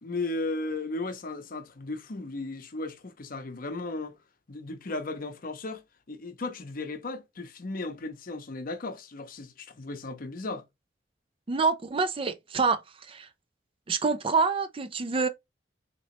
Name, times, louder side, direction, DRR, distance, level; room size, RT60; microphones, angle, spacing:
voice 1, 0.0-4.1 4.5-10.6, left 2 dB, 50° left, 0.7 m, -35 dB
voice 2, 11.5-12.8 13.1-13.3 13.9-15.3, right 4 dB, 30° right, 0.4 m, -26 dB
4.0 x 2.9 x 2.9 m
head